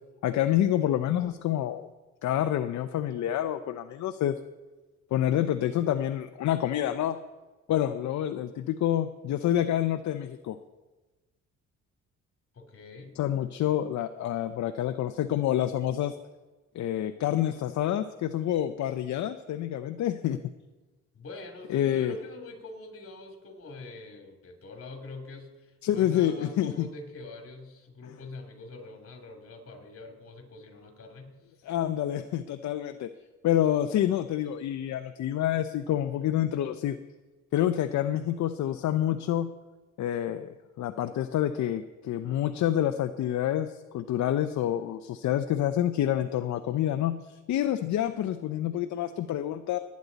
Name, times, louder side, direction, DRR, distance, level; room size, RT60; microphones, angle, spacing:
voice 1, 0.2-1.9 2.2-4.3 5.1-7.2 7.7-10.6 13.2-16.1 16.7-20.4 21.7-22.1 25.8-26.9 31.6-33.1 33.4-37.0 37.5-39.5 40.0-49.8, left 11 dB, 70° left, 10 dB, 0.7 m, -28 dB
voice 2, 12.5-13.2 21.1-31.6, left 2 dB, 50° left, 4 dB, 2.9 m, -44 dB
19.5 x 9.5 x 4.1 m, 1.2 s
cardioid pair, 90°, 30 cm